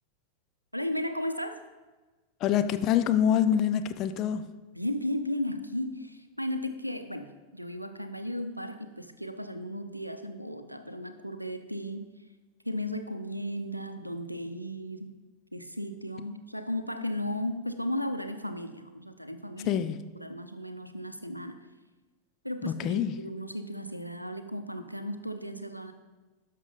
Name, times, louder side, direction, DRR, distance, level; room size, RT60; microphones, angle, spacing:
voice 1, 0.7-1.6 4.7-12.1 12.6-15.1 15.5-19.8 20.2-21.6 22.4-25.9, left 1 dB, 90° right, 9 dB, 0.6 m, -35 dB
voice 2, 2.4-4.4 19.6-20.0 22.6-23.1, left 9 dB, 35° left, 10 dB, 0.5 m, -25 dB
11.0 x 6.4 x 4.0 m, 1.3 s
figure-of-eight pair, 90°, 0 cm